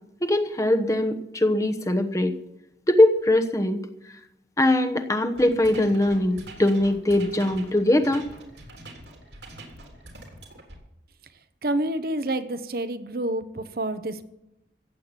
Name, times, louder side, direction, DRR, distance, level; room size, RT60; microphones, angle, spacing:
voice 1, 0.2-2.4 2.9-3.8 4.6-8.3, left 1 dB, 20° left, 7 dB, 1.0 m, -21 dB
sound 1, 5.3-10.8, right 2 dB, 80° right, 3.5 m, -44 dB
voice 2, 11.6-14.2, right 1 dB, 55° right, 11 dB, 1.0 m, -28 dB
15.0 x 8.5 x 7.4 m, 0.86 s
head